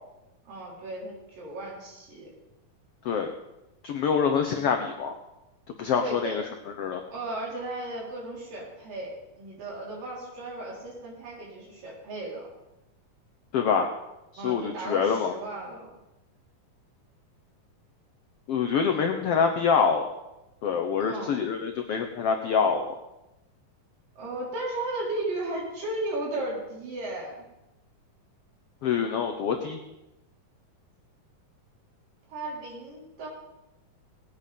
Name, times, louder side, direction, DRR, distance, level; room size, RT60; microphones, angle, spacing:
voice 1, 0.5-2.3 6.0-6.4 7.1-12.5 14.4-15.9 18.9-19.1 21.0-21.4 24.2-27.5 32.3-33.3, right 2 dB, 70° right, -4 dB, 5.8 m, -35 dB
voice 2, 3.8-5.1 5.8-6.4 6.8-7.0 13.5-13.9 14.3-15.3 18.5-20.1 20.6-22.9 28.8-29.8, left 6 dB, 90° left, 5 dB, 1.3 m, -25 dB
18.0 x 9.0 x 5.3 m, 0.93 s
omnidirectional pair, 4.0 m